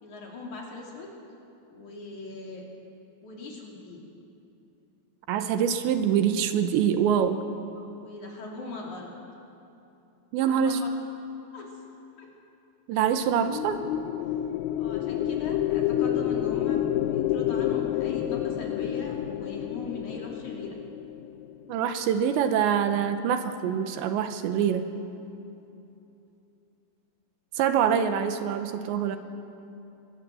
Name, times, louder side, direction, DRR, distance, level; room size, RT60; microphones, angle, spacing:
voice 1, 0.0-1.1 1.7-2.6 3.2-4.0 7.8-9.1 10.4-10.9 11.5-11.7 12.2-12.3 14.8-20.8, left 3 dB, 45° left, -1 dB, 3.9 m, -40 dB
voice 2, 5.3-7.4 10.3-10.8 12.9-13.8 21.7-24.9 27.6-29.2, right 8 dB, 80° right, 8 dB, 3.1 m, -25 dB
sound 1, 13.3-21.7, left 12 dB, 85° left, 2.2 m, -29 dB
24.5 x 20.0 x 7.7 m, 2.8 s
omnidirectional pair, 5.3 m